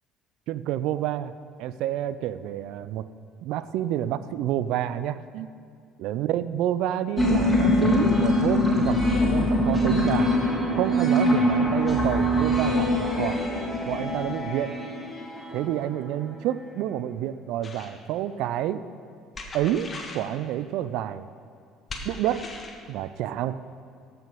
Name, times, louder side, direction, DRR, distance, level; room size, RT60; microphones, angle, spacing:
voice 1, 0.5-1.3 1.6-3.1 3.4-5.5 6.0-10.4 10.7-13.4 13.9-14.7 15.5-18.8 19.5-21.3 22.0-22.5 22.9-23.6, right 11 dB, 70° right, 14 dB, 0.4 m, -29 dB
sound 1, 7.2-16.2, left 1 dB, 20° left, 3.0 m, -23 dB
sound 2, 17.6-18.0 19.3-20.3 21.9-22.8, left 2 dB, 35° left, 1.6 m, -39 dB
14.5 x 5.8 x 5.4 m, 2.4 s
hypercardioid pair, 60°, 0 cm